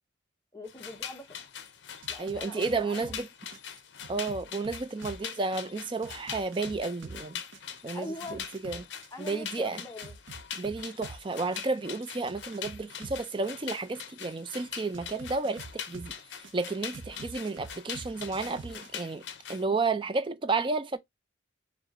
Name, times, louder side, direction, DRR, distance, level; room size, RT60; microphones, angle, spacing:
voice 1, 0.5-1.5 2.1-3.1 7.9-8.5 9.1-10.2, left 2 dB, 15° left, 1.0 m, -43 dB
sound 1, 0.7-19.6, left 8 dB, 60° left, 0.7 m, -43 dB
sound 2, 2.0-3.2 3.5-7.2 7.5-11.2 11.5-13.3 14.9-16.5 16.9-18.9, right 3 dB, 70° right, 0.9 m, -46 dB
voice 2, 2.2-3.3 4.1-7.4 7.8-8.8 9.2-9.8 10.6-19.2 19.5-21.0, right 3 dB, 25° right, 0.4 m, -32 dB
4.7 x 2.5 x 3.7 m
head